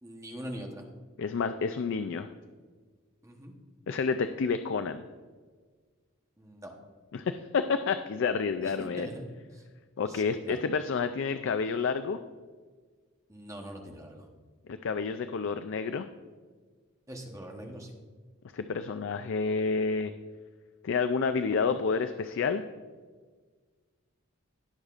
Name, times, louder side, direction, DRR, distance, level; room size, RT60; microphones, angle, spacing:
voice 1, 0.0-0.8 3.2-3.5 6.4-6.7 8.6-9.6 10.0-10.6 13.3-14.3 17.1-18.0, equal, 15° right, 1 dB, 1.0 m, -43 dB
voice 2, 1.2-2.3 3.9-5.0 7.1-9.1 10.0-12.2 14.7-16.1 18.5-20.1 20.8-22.6, left 5 dB, 60° left, 10 dB, 0.4 m, -29 dB
17.5 x 6.5 x 2.5 m, 1.5 s
head